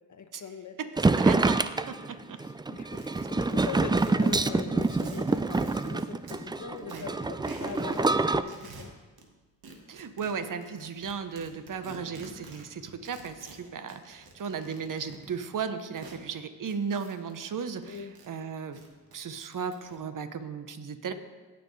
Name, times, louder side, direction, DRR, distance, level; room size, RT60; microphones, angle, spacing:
voice 1, 0.1-0.8 2.4-8.9 17.9-18.1, left 6 dB, 50° left, 7 dB, 1.1 m, -41 dB
voice 2, 0.8-2.4 6.9-7.1 9.9-18.8 19.1-21.1, right 6 dB, 55° right, 10 dB, 1.0 m, -36 dB
sound 1, 1.0-8.4, right 3 dB, 10° right, 0.4 m, -26 dB
sound 2, 2.9-6.4 6.8-8.1 8.4-9.3 9.6-16.2 16.6-18.3 18.6-20.0, right 3 dB, 70° right, 1.6 m, -49 dB
16.5 x 7.0 x 3.3 m, 1.3 s
cardioid pair, 60°, 38 cm